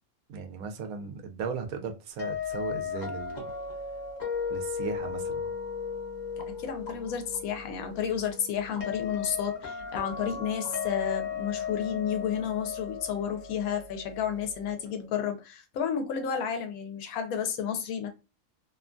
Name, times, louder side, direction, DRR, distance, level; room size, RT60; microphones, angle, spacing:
voice 1, 0.3-3.5 4.5-5.4, right 5 dB, 80° right, 1.1 m, -37 dB
sound 1, 2.2-15.0, left 6 dB, 40° left, 0.7 m, -36 dB
sound 2, 5.0-12.5, left 5 dB, 55° left, 1.1 m, -51 dB
voice 2, 6.6-18.1, left 8 dB, 90° left, 1.1 m, -31 dB
2.8 x 2.2 x 2.4 m
omnidirectional pair, 1.5 m